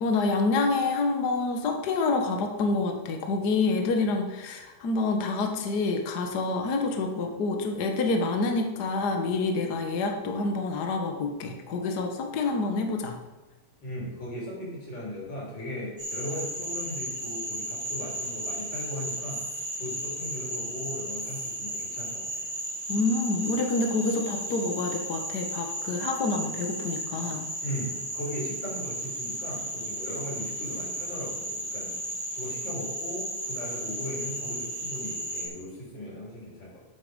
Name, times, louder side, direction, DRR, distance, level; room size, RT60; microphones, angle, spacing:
voice 1, 0.0-13.2 22.9-27.5, left 3 dB, 85° left, 4 dB, 0.8 m, -27 dB
voice 2, 13.8-19.4 19.8-22.4 27.6-31.9 32.4-36.8, left 1 dB, 35° left, -4 dB, 4.6 m, -38 dB
Frog, 16.0-35.5, right 1 dB, 25° right, 4.4 m, -34 dB
11.5 x 8.4 x 5.1 m, 1.2 s
omnidirectional pair, 3.7 m